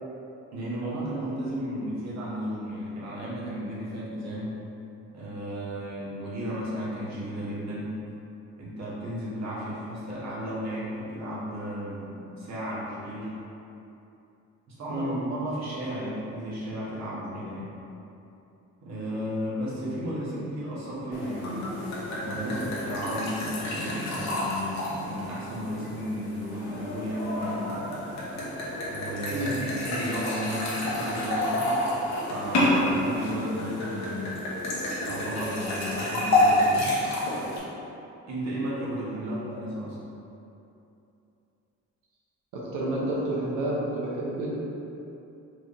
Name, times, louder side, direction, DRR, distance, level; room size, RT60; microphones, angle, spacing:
voice 1, 0.5-4.5 5.1-8.0 8.6-13.3 14.7-17.7 18.8-21.8 22.2-27.8 28.9-31.8 32.3-34.4 35.1-36.9 38.3-40.0, equal, 60° right, -7 dB, 1.3 m, -34 dB
voice 2, 14.9-15.2 29.3-29.7 33.2-33.4 39.2-39.4 42.5-44.5, right 1 dB, 85° right, -6 dB, 0.8 m, -30 dB
sound 1, 21.1-37.6, left 1 dB, 60° left, 1.0 m, -29 dB
4.7 x 3.2 x 2.6 m, 2.8 s
cardioid pair, 90°, 30 cm